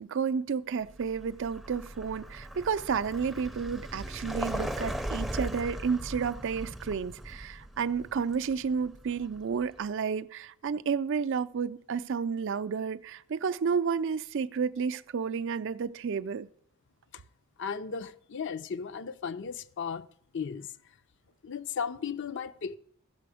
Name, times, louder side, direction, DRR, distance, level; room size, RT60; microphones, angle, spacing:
voice 1, 0.0-16.5, right 6 dB, 55° right, 0.4 m, -31 dB
Vehicle, 0.9-9.7, equal, ahead, 0.5 m, -38 dB
voice 2, 17.6-20.1 20.3-20.7 21.4-22.8, left 6 dB, 55° left, 0.5 m, -35 dB
15.0 x 6.8 x 4.9 m
head